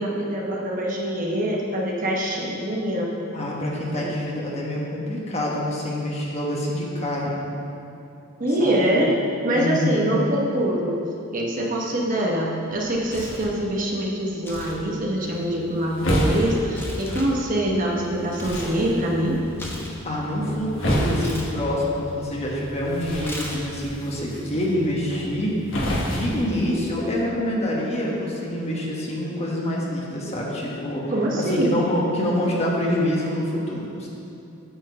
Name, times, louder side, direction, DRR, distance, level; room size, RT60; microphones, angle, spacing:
voice 1, 0.0-3.1 3.9-4.1 8.4-9.1 9.4-11.0 11.3-19.4 31.1-31.7, right 1 dB, 40° right, -2 dB, 1.0 m, -24 dB
voice 2, 3.3-7.3 8.5-8.9 9.5-10.2 20.0-34.1, left 1 dB, 30° left, -3 dB, 1.3 m, -26 dB
Tearing, 12.7-13.6 14.3-14.8 15.1-18.8 19.1-20.6 21.1-21.5 23.2-23.8, left 1 dB, 10° left, 0.9 m, -38 dB
sound 1, 15.2-27.2, equal, 60° left, 1.4 m, -30 dB
9.0 x 4.5 x 6.8 m, 2.9 s
head